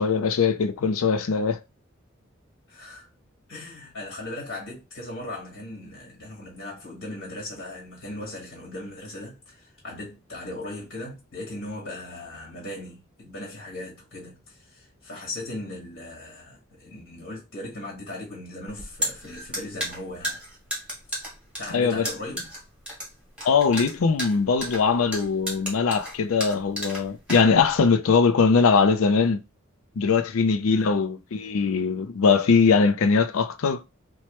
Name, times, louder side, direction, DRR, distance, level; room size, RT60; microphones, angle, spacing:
voice 1, 0.0-1.6 21.7-22.1 23.4-29.4 30.0-33.8, left 5 dB, 90° left, 0.4 m, -21 dB
voice 2, 2.7-3.1 3.5-14.4 14.7-20.4 21.6-22.6 30.6-31.0, left 1 dB, 65° left, 1.4 m, -38 dB
sound 1, 18.7-27.9, equal, 5° right, 1.0 m, -33 dB
2.9 x 2.2 x 3.1 m
head